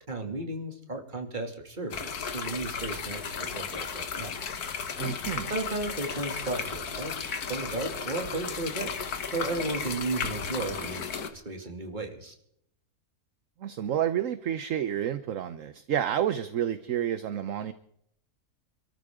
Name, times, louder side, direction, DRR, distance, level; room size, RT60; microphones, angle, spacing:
voice 1, 0.1-4.3 5.5-7.1 7.5-8.9 9.3-12.3, right 2 dB, 30° right, 3 dB, 2.7 m, -34 dB
sound 1, 1.9-11.3, left 6 dB, 80° left, 1.9 m, -34 dB
voice 2, 5.0-5.5 13.6-17.7, right 10 dB, 60° right, 11 dB, 1.1 m, -29 dB
27.5 x 13.5 x 3.7 m, 0.70 s
omnidirectional pair, 1.6 m